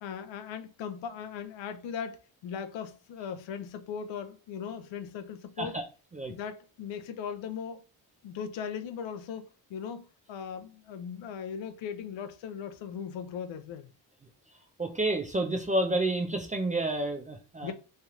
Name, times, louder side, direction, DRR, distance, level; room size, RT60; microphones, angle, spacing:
voice 1, 0.0-5.8 6.3-7.8 8.2-13.9 17.6-17.7, left 7 dB, 75° left, 0.6 m, -38 dB
voice 2, 14.8-17.7, right 2 dB, 20° right, 0.3 m, -29 dB
3.2 x 2.3 x 2.8 m
cardioid pair, 100°, 46 cm